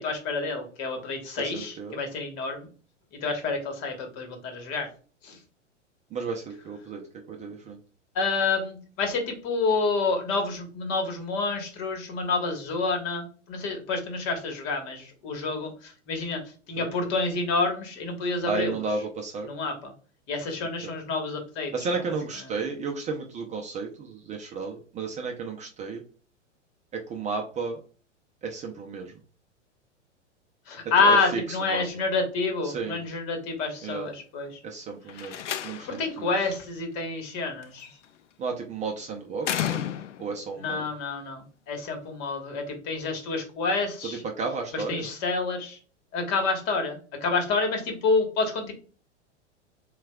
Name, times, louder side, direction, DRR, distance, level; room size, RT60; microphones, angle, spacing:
voice 1, 0.0-2.7 3.2-4.9 5.2-5.4 8.1-16.4 16.7-18.7 19.5-19.9 20.3-22.0 30.7-34.6 35.1-35.4 35.9-37.9 40.6-44.2 44.7-45.8 46.1-48.7, left 3 dB, 40° left, 4 dB, 1.4 m, -28 dB
voice 2, 1.4-2.0 6.1-7.0 7.3-7.8 16.8-16.9 18.5-19.5 20.8-20.9 21.7-26.0 26.9-27.8 28.4-29.2 31.0-31.8 32.6-33.0 33.8-34.1 34.6-36.5 38.4-39.8 40.2-40.8 44.4-45.1, right 4 dB, 20° right, 2 dB, 0.5 m, -33 dB
Slam, 35.1-36.1 37.6-38.1 39.4-40.4, left 10 dB, 75° left, 0.5 m, -32 dB
7.2 x 2.4 x 2.3 m, 0.39 s
figure-of-eight pair, 100°, 36 cm